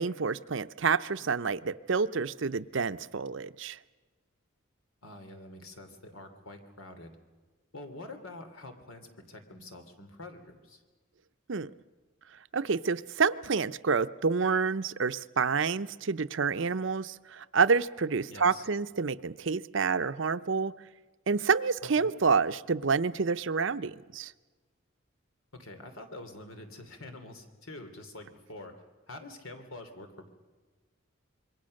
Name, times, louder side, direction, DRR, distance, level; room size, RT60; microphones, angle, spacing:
voice 1, 0.0-3.8 11.5-11.7 12.5-20.7 21.3-24.3, right 5 dB, 65° right, 13 dB, 0.6 m, -28 dB
voice 2, 5.0-7.1 7.7-10.8 18.3-18.7 21.8-22.1 25.5-28.7 29.1-30.3, left 2 dB, 90° left, 7 dB, 2.9 m, -46 dB
26.5 x 22.5 x 6.5 m, 1.3 s
head